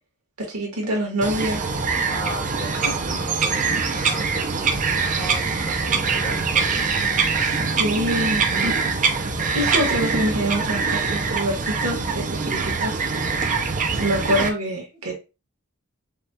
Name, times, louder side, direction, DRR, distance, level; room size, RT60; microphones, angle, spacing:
voice 1, 0.4-1.7 2.8-3.2 7.4-8.8 9.5-13.0 13.9-15.1, equal, 85° right, 1.7 m, -26 dB
Bird vocalization bird call bird song, 1.2-14.5, right 4 dB, 35° right, 0.6 m, -23 dB
voice 2, 2.1-6.9 7.5-8.0, equal, 20° left, 1.1 m, -37 dB
5.4 x 2.4 x 2.8 m
head